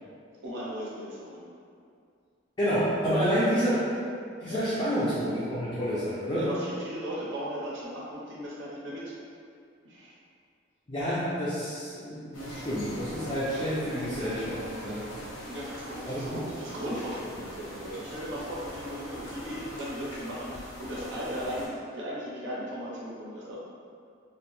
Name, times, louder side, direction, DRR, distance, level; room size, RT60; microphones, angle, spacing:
voice 1, 0.4-1.5 3.2-3.4 4.5-4.6 6.4-9.1 9.8-10.1 15.5-23.6, equal, 70° right, -6 dB, 0.5 m, -37 dB
voice 2, 2.6-3.9 4.4-6.5 10.9-15.1 16.1-16.2, equal, 20° left, -11 dB, 0.4 m, -29 dB
sound 1, 12.3-21.7, equal, 80° left, 0.9 m, -42 dB
2.6 x 2.1 x 2.9 m, 2.4 s
head